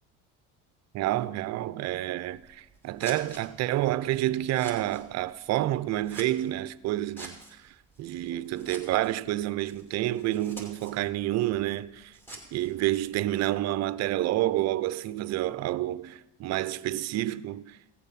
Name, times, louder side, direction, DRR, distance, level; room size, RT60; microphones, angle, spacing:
voice 1, 0.9-12.2 12.5-17.8, right 14 dB, 45° right, 0.6 m, -29 dB
Scissors, 2.2-13.7, right 2 dB, 5° left, 2.7 m, -50 dB
16.5 x 7.1 x 5.9 m
supercardioid pair, 110°, 37 cm